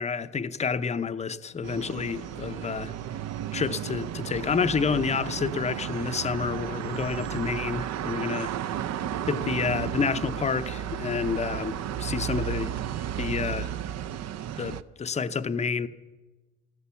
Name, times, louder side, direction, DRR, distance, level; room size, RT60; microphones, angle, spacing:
voice 1, 0.0-2.9 3.5-8.5 9.2-12.7 13.2-13.7 14.6-15.9, left 5 dB, 20° left, 0.6 m, -29 dB
sound 1, 1.6-14.8, right 10 dB, 60° right, 0.6 m, -33 dB
13.5 x 13.0 x 7.0 m
cardioid pair, 90°, 30 cm